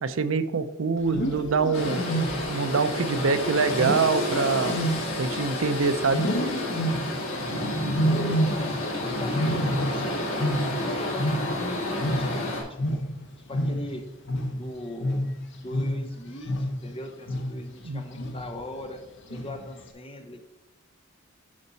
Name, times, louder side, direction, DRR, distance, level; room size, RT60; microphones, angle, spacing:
voice 1, 0.0-2.0 2.5-4.8 5.2-6.3 17.8-18.0, right 4 dB, 75° right, 11 dB, 0.6 m, -25 dB
Wild animals, 1.0-2.7 3.8-5.7 6.1-7.3 7.9-9.0 9.2-11.7 12.0-16.9 17.3-17.7 18.2-18.6 19.3-19.8, equal, 60° left, 1.0 m, -28 dB
sound 1, 1.7-12.6, left 1 dB, 90° left, 3.1 m, -30 dB
voice 2, 7.3-10.2 10.8-13.0 13.5-14.0 14.5-15.3 15.6-19.0 19.3-20.4, left 1 dB, 25° left, 5 dB, 0.9 m, -40 dB
9.8 x 5.4 x 4.1 m, 0.97 s
head